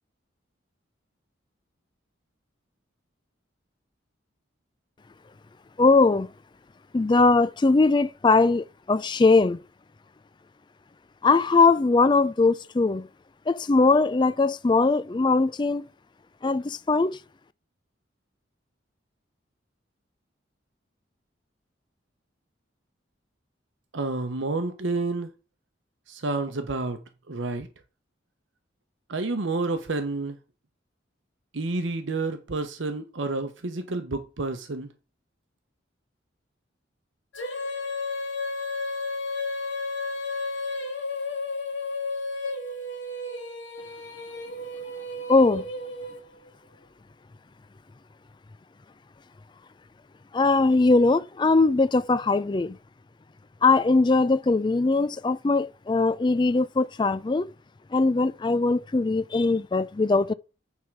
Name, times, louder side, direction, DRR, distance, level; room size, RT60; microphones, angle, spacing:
voice 1, 5.8-6.3 6.9-9.6 11.2-13.1 13.5-15.9 16.4-17.2 45.3-45.7 50.3-52.8 53.6-57.5 57.9-60.3, left 3 dB, 25° left, 0.4 m, -21 dB
voice 2, 23.9-25.3 26.1-27.0 27.3-27.7 29.1-30.4 31.5-34.9, right 3 dB, 80° right, 0.9 m, -29 dB
Female singing, 37.3-46.5, left 2 dB, 80° left, 2.1 m, -32 dB
9.3 x 3.7 x 5.9 m
head